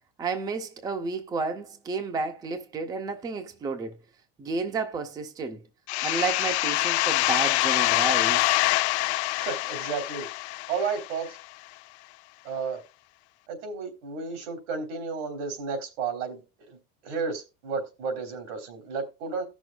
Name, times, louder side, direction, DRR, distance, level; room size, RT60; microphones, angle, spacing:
voice 1, 0.2-3.9 4.4-5.6 6.0-8.4, right 4 dB, 10° right, 0.6 m, -31 dB
sound 1, 5.9-11.4, left 20 dB, 65° left, 0.6 m, -25 dB
voice 2, 9.4-10.3 10.7-11.4 12.4-12.8 13.5-16.4 17.0-19.4, right 5 dB, 70° right, 3.4 m, -32 dB
17.5 x 6.2 x 2.2 m
supercardioid pair, 175°, 36 cm